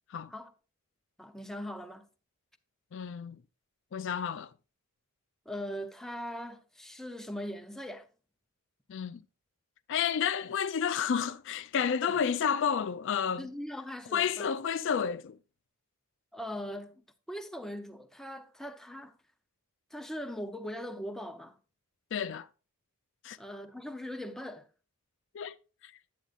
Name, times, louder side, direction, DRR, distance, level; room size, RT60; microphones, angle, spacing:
voice 1, 1.2-2.1 5.5-8.1 12.1-12.2 13.4-14.5 16.3-19.2 19.9-21.6 23.4-24.7, equal, ahead, 0.6 m, -40 dB
voice 2, 2.9-3.4 3.9-4.5 8.9-9.2 9.9-13.5 14.1-15.4 22.1-22.5 23.2-23.4 25.3-25.6 25.8-25.9, left 7 dB, 55° left, 0.3 m, -30 dB
9.2 x 8.9 x 2.4 m
head